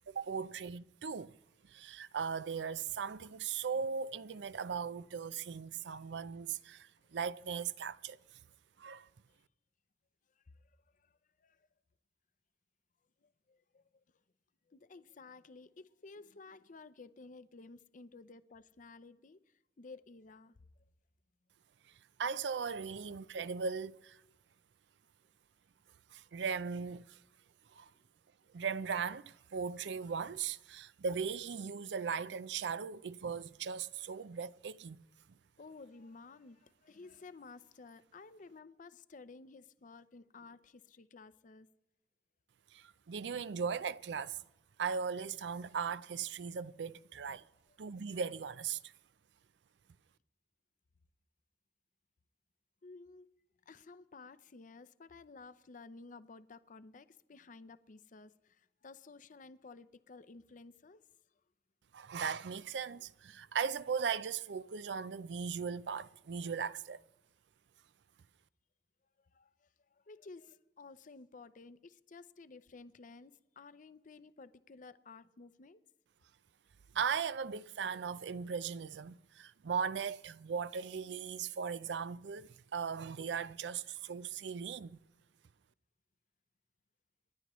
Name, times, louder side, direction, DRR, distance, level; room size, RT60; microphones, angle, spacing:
voice 1, 0.1-1.3 1.7-8.2 8.8-9.1 22.2-24.2 26.1-27.2 27.7-27.9 28.5-35.0 42.7-44.4 44.8-47.4 47.8-48.8 61.9-67.0 76.9-85.0, right 6 dB, 90° right, 0.5 m, -38 dB
voice 2, 13.2-13.8 14.7-19.4 19.8-20.5 35.6-41.7 52.8-53.3 53.7-61.0 69.3-69.5 70.1-75.8, left 3 dB, 50° left, 0.6 m, -54 dB
28.5 x 11.0 x 3.1 m
head